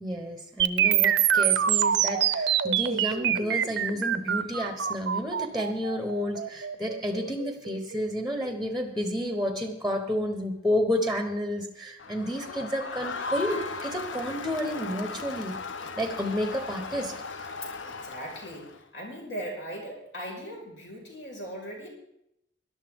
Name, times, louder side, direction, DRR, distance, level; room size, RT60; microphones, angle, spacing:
voice 1, 0.0-15.6 16.0-17.1, equal, ahead, 6 dB, 1.1 m, -30 dB
sound 1, 0.6-8.6, right 9 dB, 65° right, 0.7 m, -26 dB
Crowd, 12.0-18.8, left 4 dB, 85° left, 0.9 m, -37 dB
voice 2, 17.8-21.9, right 1 dB, 65° left, -1 dB, 5.2 m, -39 dB
19.5 x 11.5 x 3.7 m, 0.79 s
head